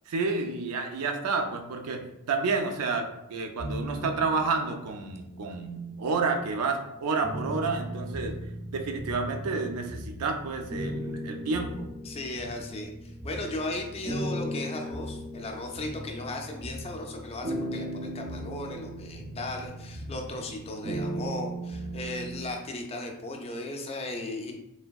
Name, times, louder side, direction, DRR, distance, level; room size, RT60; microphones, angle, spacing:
voice 1, 0.1-2.0 2.3-8.3 8.7-11.9, right 4 dB, 85° right, 5 dB, 0.4 m, -30 dB
sound 1, 3.6-5.3 5.9-22.5, right 1 dB, 30° right, 0.5 m, -37 dB
voice 2, 12.0-24.5, left 2 dB, 25° left, 2 dB, 0.4 m, -36 dB
3.2 x 2.6 x 2.3 m, 0.85 s
head